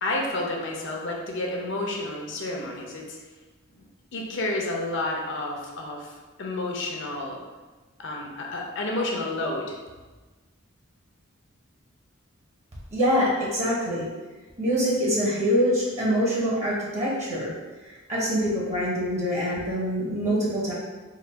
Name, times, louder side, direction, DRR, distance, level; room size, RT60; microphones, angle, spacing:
voice 1, 0.0-3.2 4.1-6.1 6.4-7.4 8.0-9.8, left 2 dB, 60° left, 0 dB, 0.7 m, -30 dB
voice 2, 12.9-14.1 14.6-17.5 17.8-20.7, equal, 35° right, -6 dB, 0.9 m, -25 dB
3.9 x 2.4 x 3.4 m, 1.3 s
head